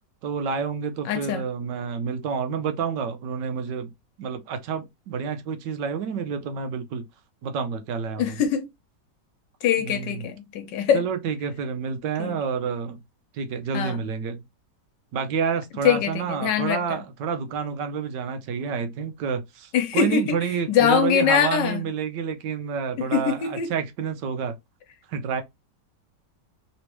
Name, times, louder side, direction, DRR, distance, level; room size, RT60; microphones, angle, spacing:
voice 1, 0.2-3.9 4.2-7.0 7.4-8.4 9.8-10.3 10.9-13.0 13.3-14.4 15.1-24.6 25.1-25.4, right 6 dB, 75° right, 1.3 m, -29 dB
voice 2, 1.0-1.4 8.2-8.7 9.6-11.0 12.2-12.4 13.7-14.0 15.8-17.0 19.7-20.4 20.7-21.8 23.0-23.7, left 8 dB, 80° left, 1.5 m, -23 dB
3.5 x 3.1 x 2.9 m
omnidirectional pair, 1.9 m